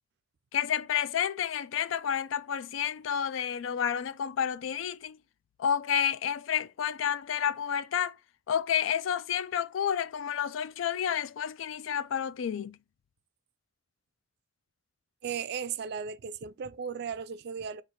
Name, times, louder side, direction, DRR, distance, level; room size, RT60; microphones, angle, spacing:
voice 1, 0.5-5.2 5.6-8.1 8.5-12.8, left 8 dB, 85° left, 0.4 m, -30 dB
voice 2, 15.2-17.8, right 7 dB, 55° right, 0.3 m, -36 dB
4.4 x 2.4 x 4.3 m
head